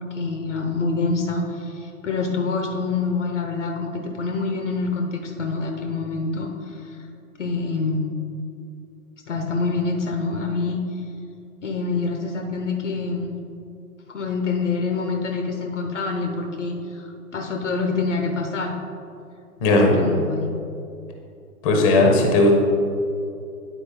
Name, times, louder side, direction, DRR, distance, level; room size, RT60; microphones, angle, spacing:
voice 1, 0.1-7.0 7.4-8.0 9.3-10.8 11.6-13.3 14.1-18.8 19.7-20.5, left 4 dB, 50° left, 3 dB, 0.8 m, -26 dB
voice 2, 19.6-20.0 21.6-22.5, left 2 dB, 20° left, 1 dB, 0.9 m, -16 dB
9.1 x 4.4 x 4.2 m, 2.6 s
figure-of-eight pair, 125°, 46 cm